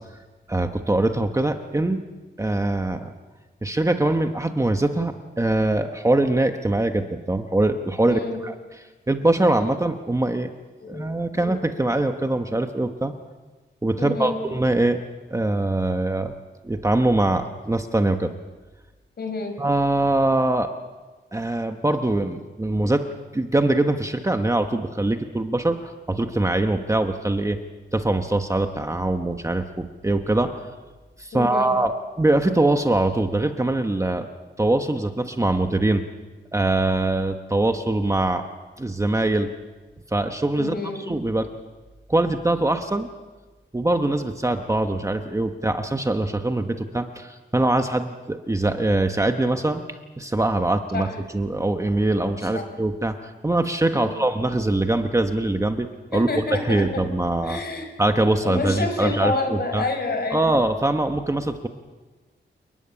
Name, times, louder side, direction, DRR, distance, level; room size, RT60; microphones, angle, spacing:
voice 1, 0.5-2.0 2.4-3.1 3.6-8.5 9.1-10.5 10.9-13.1 13.8-15.0 15.3-16.3 16.6-18.3 19.6-20.7 21.3-23.1 23.3-27.6 27.9-30.6 31.2-34.3 34.6-36.0 36.5-38.4 38.8-39.5 40.1-40.7 41.1-41.5 42.1-43.1 43.7-49.8 50.2-51.1 51.3-57.6 58.0-59.9 60.3-61.7, right 2 dB, 15° right, 6 dB, 1.2 m, -23 dB
voice 2, 8.0-8.4 10.8-11.0 11.3-11.5 14.0-14.4 19.2-19.6 31.3-31.7 40.6-41.1 50.9-51.1 52.4-52.6 54.0-54.2 56.1-57.0 57.4-57.9 58.4-60.5, left 3 dB, 55° left, 6 dB, 5.2 m, -28 dB
29.5 x 13.0 x 9.9 m, 1.2 s
wide cardioid pair, 145°, 20 cm